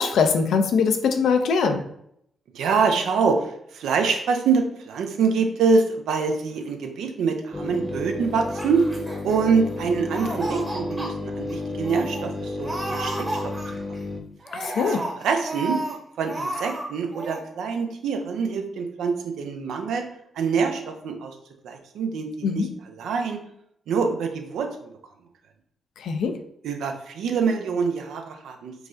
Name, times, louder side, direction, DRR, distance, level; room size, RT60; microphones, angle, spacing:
voice 1, 0.0-1.8 14.5-15.0 22.4-22.7 26.0-26.3, left 5 dB, 70° left, 6 dB, 0.4 m, -22 dB
voice 2, 2.5-8.8 9.2-13.5 14.8-15.8 16.2-20.0 20.3-21.3 21.6-23.4 23.9-24.9 26.6-28.7, right 5 dB, 75° right, 5 dB, 0.5 m, -25 dB
sound 1, 7.5-14.2, left 2 dB, ahead, 0.8 m, -32 dB
Laughter, 8.4-9.8 10.1-11.1 11.5-11.6 11.8-12.2 12.6-14.0 14.4-15.9 16.2-16.8 17.1-17.4, right 1 dB, 35° right, 1.4 m, -32 dB
4.6 x 2.4 x 2.6 m, 0.71 s
hypercardioid pair, 40°, 0 cm